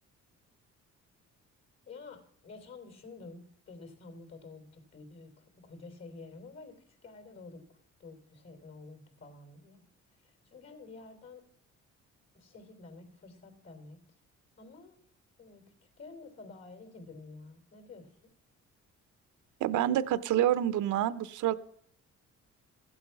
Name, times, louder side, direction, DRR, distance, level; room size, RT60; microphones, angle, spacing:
voice 1, 1.8-9.8 10.2-11.4 12.3-14.0 14.6-15.0 15.4-18.3, left 3 dB, 60° left, 5 dB, 3.4 m, -50 dB
voice 2, 19.6-21.5, right 12 dB, 80° right, 16 dB, 0.7 m, -27 dB
14.5 x 7.9 x 5.8 m, 0.65 s
cardioid pair, 90°, 30 cm